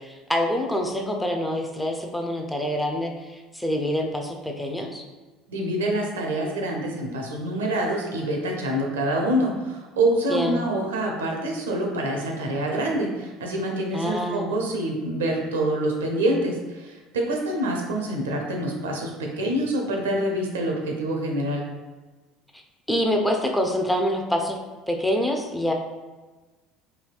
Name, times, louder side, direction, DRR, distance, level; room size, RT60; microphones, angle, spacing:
voice 1, 0.0-3.1 3.5-5.0 10.3-10.6 13.9-14.6 22.9-24.6 24.9-25.7, equal, 5° left, 2 dB, 0.4 m, -26 dB
voice 2, 5.5-21.7, right 1 dB, 80° right, 1 dB, 0.5 m, -26 dB
3.3 x 2.6 x 2.3 m, 1.3 s
hypercardioid pair, 65°, 0 cm